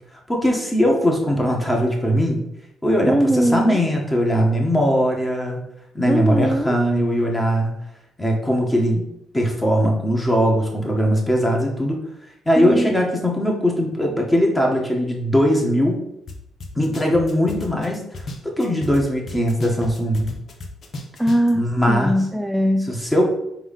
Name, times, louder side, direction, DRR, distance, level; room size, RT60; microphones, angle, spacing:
voice 1, 0.3-2.4 2.8-5.6 6.0-7.7 8.2-9.0 9.3-12.0 12.5-16.0 16.8-18.0 18.4-20.3 21.5-22.2 22.9-23.4, equal, 15° left, 0 dB, 1.8 m, -20 dB
voice 2, 3.0-3.8 6.1-6.8 12.6-12.9 21.2-22.9, right 1 dB, 5° right, 5 dB, 0.4 m, -20 dB
sound 1, 16.3-16.4 16.6-19.0 19.3-21.5, left 2 dB, 55° left, 1.2 m, -33 dB
4.9 x 4.0 x 5.5 m, 0.80 s
cardioid pair, 90°, 0 cm